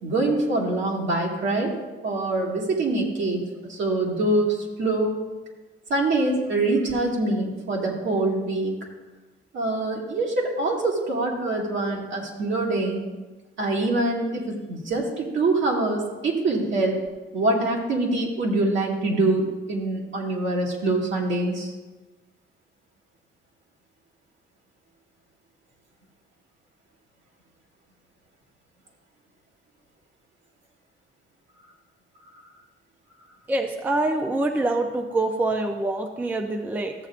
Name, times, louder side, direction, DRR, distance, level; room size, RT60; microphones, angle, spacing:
voice 1, 0.0-1.8 2.0-3.4 3.7-5.2 5.9-8.7 9.5-13.0 13.6-17.0 17.3-21.7, right 2 dB, 70° right, -2 dB, 2.1 m, -24 dB
voice 2, 33.5-36.9, right 2 dB, 10° right, 5 dB, 0.4 m, -25 dB
14.0 x 8.2 x 2.5 m, 1.2 s
wide cardioid pair, 180°, 21 cm